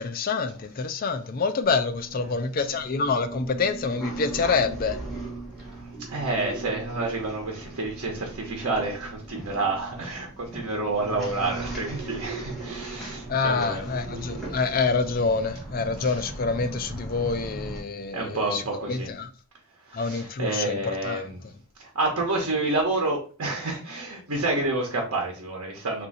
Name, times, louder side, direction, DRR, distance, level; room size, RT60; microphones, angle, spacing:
voice 1, 0.0-5.0 13.3-18.6 18.9-19.3 19.9-20.8 21.0-21.2, left 4 dB, 40° left, 0.4 m, -26 dB
sound 1, 1.6-17.8, right 2 dB, ahead, 1.4 m, -38 dB
voice 2, 6.1-13.8 16.0-16.3 18.1-19.1 19.9-21.4 21.8-26.1, right 2 dB, 85° right, 1.0 m, -29 dB
3.6 x 2.7 x 4.1 m
head